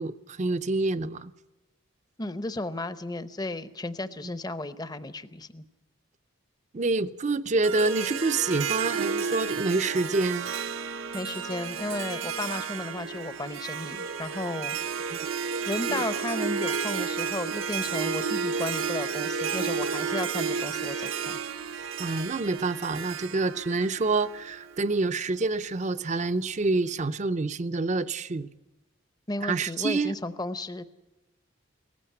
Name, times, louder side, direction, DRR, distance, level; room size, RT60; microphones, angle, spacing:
voice 1, 0.0-1.3 6.7-10.5 15.1-15.2 15.9-16.0 22.0-28.5 29.4-30.1, right 3 dB, 35° right, 14 dB, 0.6 m, -27 dB
voice 2, 2.2-5.6 11.1-14.8 15.7-21.4 29.3-30.8, left 2 dB, 20° left, 12 dB, 0.7 m, -34 dB
Harp, 7.6-24.9, right 6 dB, 70° right, 0.8 m, -32 dB
18.5 x 15.0 x 9.7 m, 1.0 s
head